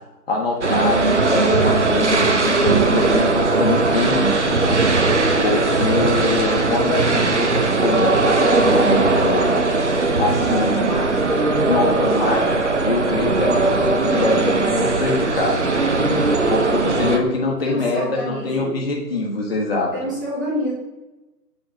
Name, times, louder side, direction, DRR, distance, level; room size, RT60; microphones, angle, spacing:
voice 1, 0.3-4.6 5.4-9.5 10.2-10.8 11.7-16.2 16.5-19.9, left 2 dB, 35° left, -1 dB, 1.3 m, -23 dB
sound 1, 0.6-17.2, right 3 dB, 45° right, 0.7 m, -19 dB
voice 2, 10.4-11.5 16.1-17.2 17.6-18.7 19.9-20.7, equal, 10° right, -7 dB, 1.2 m, -29 dB
7.9 x 3.6 x 4.7 m, 1.1 s
figure-of-eight pair, 150°, 48 cm